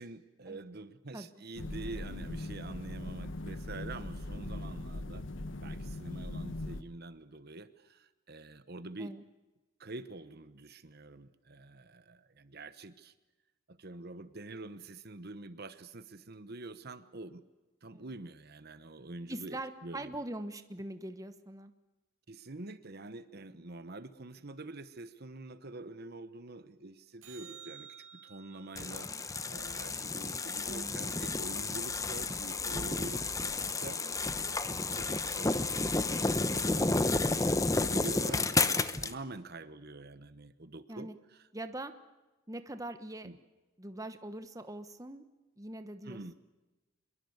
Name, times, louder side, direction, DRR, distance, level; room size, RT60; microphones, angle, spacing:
voice 1, 0.0-5.3 5.6-9.1 9.8-13.1 13.7-17.4 17.8-20.2 22.3-29.1 29.5-33.5 33.8-34.2 34.5-41.1 43.2-43.4 46.0-46.3, right 2 dB, 50° right, 12 dB, 1.1 m, -46 dB
sound 1, 1.6-6.8, left 1 dB, 60° left, 1.3 m, -40 dB
voice 2, 19.3-21.7 30.6-30.9 40.9-41.1 41.5-41.9 42.5-43.3 43.8-45.2 45.6-46.3, right 1 dB, 15° right, 9 dB, 1.2 m, -42 dB
sound 2, 27.2-31.7 38.2-38.3, right 8 dB, 65° right, 6.1 m, -55 dB
sound 3, 28.8-39.1, left 3 dB, 15° left, 0.9 m, -31 dB
25.0 x 22.5 x 8.1 m, 1.1 s
head